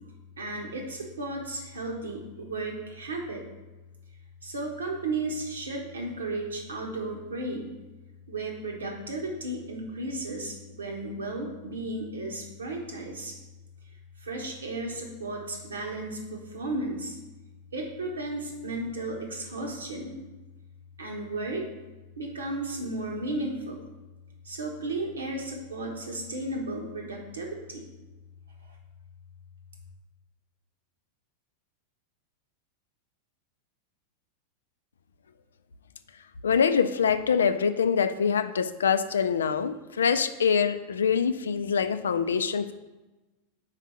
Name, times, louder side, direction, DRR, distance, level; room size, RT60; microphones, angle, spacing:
voice 1, 0.4-3.5 4.4-7.7 8.3-13.3 14.2-17.2 17.7-20.2 21.0-21.7 22.2-23.8 24.4-27.8, right 2 dB, 70° right, 0 dB, 1.3 m, -34 dB
voice 2, 36.4-42.7, left 6 dB, 70° left, 11 dB, 0.3 m, -24 dB
4.9 x 4.5 x 5.8 m, 1.1 s
figure-of-eight pair, 90°, 0 cm